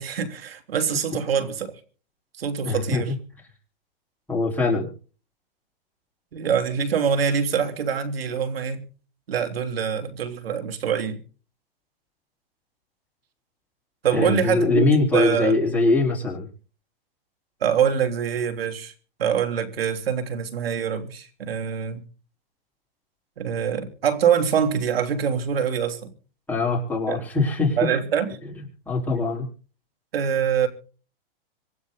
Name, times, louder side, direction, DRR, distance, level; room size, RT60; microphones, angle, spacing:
voice 1, 0.0-1.7 2.4-3.1 6.3-8.9 9.3-11.2 14.0-15.6 17.6-18.9 19.2-22.0 23.4-26.1 27.1-27.2 27.8-28.4 30.1-30.7, right 7 dB, 85° right, 3.3 m, -24 dB
voice 2, 2.6-3.2 4.3-4.9 14.1-16.5 26.5-27.9 28.9-29.5, left 3 dB, 5° left, 4.4 m, -22 dB
25.5 x 9.5 x 4.1 m
hypercardioid pair, 140°, 29 cm